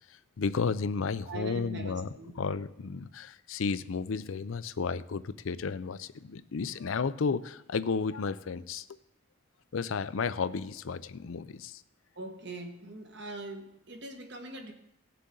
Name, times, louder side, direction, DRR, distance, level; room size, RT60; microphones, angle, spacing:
voice 1, 0.4-2.1 2.4-8.8 9.7-11.8, left 5 dB, 85° left, 14 dB, 0.5 m, -32 dB
voice 2, 1.3-2.4 12.1-14.7, right 2 dB, 55° right, 4 dB, 1.6 m, -42 dB
17.5 x 6.7 x 3.8 m, 0.80 s
head